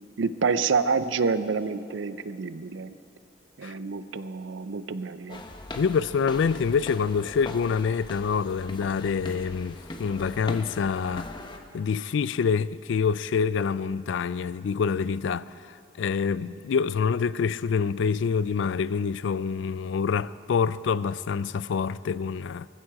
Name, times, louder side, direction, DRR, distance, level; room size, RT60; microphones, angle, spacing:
voice 1, 0.2-3.0 3.6-5.4, right 5 dB, 75° right, 0.5 m, -28 dB
sound 1, 5.3-11.6, left 2 dB, 25° left, 0.8 m, -40 dB
voice 2, 5.8-11.3 11.7-15.5 16.0-22.7, left 6 dB, 75° left, 0.3 m, -26 dB
18.5 x 15.0 x 4.8 m
head